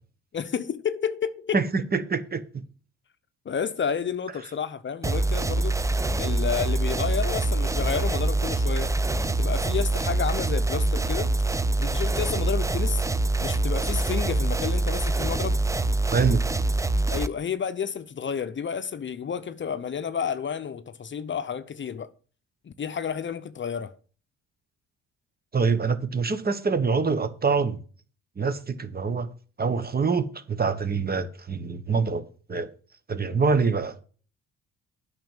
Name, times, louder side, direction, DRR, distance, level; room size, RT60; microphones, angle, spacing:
voice 1, 0.3-1.6 3.4-5.8 6.2-9.0 9.2-11.3 11.8-13.0 13.4-15.6 17.1-22.1 22.6-24.0, left 7 dB, 40° left, 0.7 m, -30 dB
voice 2, 1.5-2.6 16.1-16.4 25.5-27.8 28.4-29.3 29.6-32.2 32.5-32.7 33.1-33.9, right 5 dB, 30° right, 1.3 m, -25 dB
sound 1, 5.0-17.3, right 2 dB, 10° right, 0.6 m, -25 dB
9.2 x 6.0 x 7.2 m
cardioid pair, 90°, 30 cm